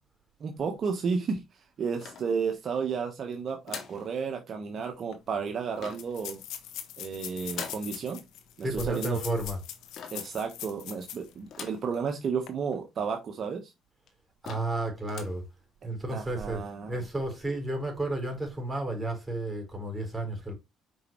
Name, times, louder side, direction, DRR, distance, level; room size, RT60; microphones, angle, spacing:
voice 1, 0.4-1.4 1.8-6.4 7.0-8.2 8.6-9.2 10.1-13.7 16.1-17.0, right 5 dB, 50° right, 1.2 m, -32 dB
sound 1, 2.0-2.8 3.7-4.1 5.8-6.2 7.5-7.9 10.0-10.3 11.5-11.9 12.4-12.5 12.7-12.8 13.6-13.7 14.1-14.2 14.4-14.8 15.1-15.4, left 7 dB, 60° left, 2.1 m, -42 dB
sound 2, 4.8-4.9 5.1-5.2 5.9-11.3 11.7-11.8 12.3-12.5, left 11 dB, 80° left, 1.5 m, -42 dB
voice 2, 8.6-9.6 14.4-15.5 15.8-20.5, right 2 dB, 15° right, 4.4 m, -32 dB
6.8 x 5.2 x 3.1 m
cardioid pair, 95°, 0 cm